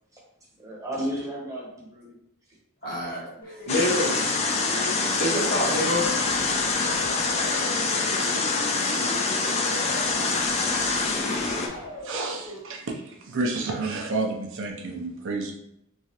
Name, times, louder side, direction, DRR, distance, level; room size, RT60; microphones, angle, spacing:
voice 1, 0.6-2.2 3.3-3.6 4.1-4.3, equal, 15° right, -4 dB, 0.8 m, -34 dB
voice 2, 2.8-4.2 5.2-6.1, left 1 dB, 45° left, -4 dB, 1.1 m, -27 dB
sound 1, 3.4-12.6, left 1 dB, 70° left, 1.0 m, -38 dB
sound 2, 3.7-11.7, left 3 dB, 30° left, 0.3 m, -25 dB
voice 3, 12.0-15.5, right 3 dB, 60° right, 1 dB, 0.5 m, -30 dB
3.0 x 2.3 x 2.8 m, 0.76 s
head